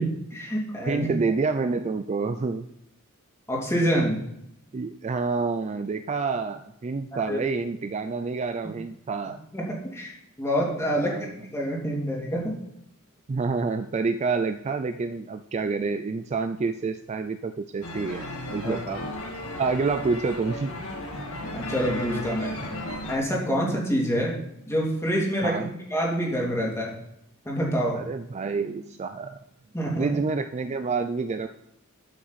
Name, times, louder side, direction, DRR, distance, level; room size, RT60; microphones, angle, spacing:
voice 1, 0.0-1.1 3.5-4.2 7.3-7.4 9.5-12.6 18.6-18.8 21.5-22.7 23.1-24.3 24.7-27.0 27.4-28.0 29.7-30.1, equal, 15° left, -3 dB, 2.6 m, -27 dB
voice 2, 0.9-2.7 4.7-9.4 11.0-11.3 13.3-18.3 18.5-19.1 19.6-20.7 24.2-24.3 25.4-25.7 27.9-29.4 30.0-31.5, right 4 dB, 30° right, 8 dB, 0.4 m, -28 dB
sound 1, 17.8-23.2, left 1 dB, 70° left, 1.8 m, -35 dB
12.5 x 5.9 x 4.1 m, 0.78 s
head